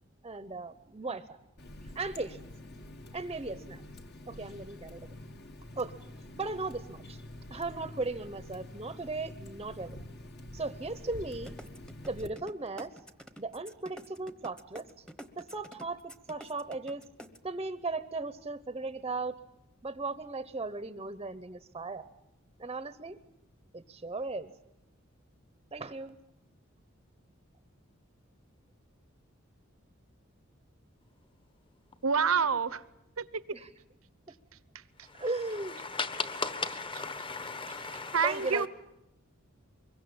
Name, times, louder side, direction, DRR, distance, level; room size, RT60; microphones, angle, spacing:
voice 1, 0.2-1.4 1.9-2.4 3.1-3.8 4.3-5.1 5.8-6.0 6.3-7.2 7.5-10.0 10.5-11.6 12.1-12.9 13.4-14.9 15.4-17.0 17.4-19.3 19.8-22.1 22.6-23.2 23.7-24.5 25.7-26.2 33.5-33.7 35.1-35.8 38.2-38.7, right 3 dB, 25° right, 13 dB, 0.8 m, -37 dB
Water tap faucet, 1.6-12.3, left 1 dB, 55° left, 1.9 m, -47 dB
sound 1, 11.5-17.4, equal, 5° left, 1.1 m, -47 dB
voice 2, 32.0-32.8 33.2-33.4 38.1-38.7, right 6 dB, 85° right, 17 dB, 1.0 m, -27 dB
voice 3, 35.0-38.7, left 4 dB, 25° left, 12 dB, 1.4 m, -37 dB
24.5 x 22.5 x 8.8 m, 0.89 s
head